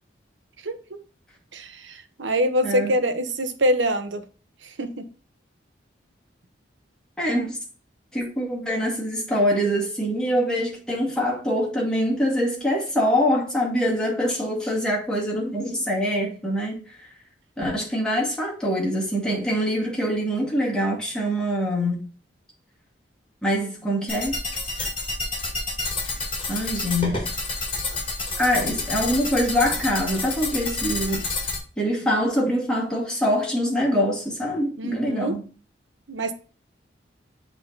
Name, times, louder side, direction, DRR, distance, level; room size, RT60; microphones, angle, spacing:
voice 1, 0.6-1.0 1.5-4.2 4.6-5.1 34.8-35.4 36.1-36.3, equal, 90° right, 1.0 m, -25 dB
voice 2, 2.6-2.9 7.2-7.6 8.1-17.1 17.6-22.0 23.4-24.4 26.5-27.3 28.4-31.3 31.8-35.4, equal, 5° left, 2.2 m, -24 dB
sound 1, 24.1-31.6, left 3 dB, 30° left, 2.0 m, -29 dB
7.7 x 3.8 x 4.0 m
head